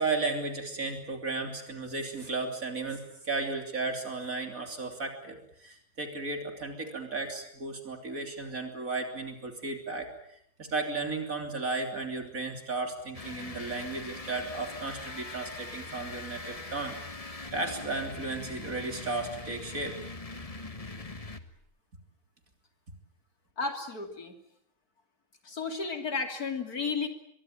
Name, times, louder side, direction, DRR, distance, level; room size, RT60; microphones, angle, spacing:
voice 1, 0.0-10.1 10.6-20.0, right 3 dB, 65° right, 4 dB, 3.7 m, -34 dB
sound 1, 13.1-21.7, left 3 dB, 25° left, 1.5 m, -42 dB
voice 2, 23.6-24.4 25.5-27.1, left 4 dB, 85° left, 5 dB, 3.5 m, -33 dB
24.0 x 23.0 x 8.9 m, 0.71 s
omnidirectional pair, 1.6 m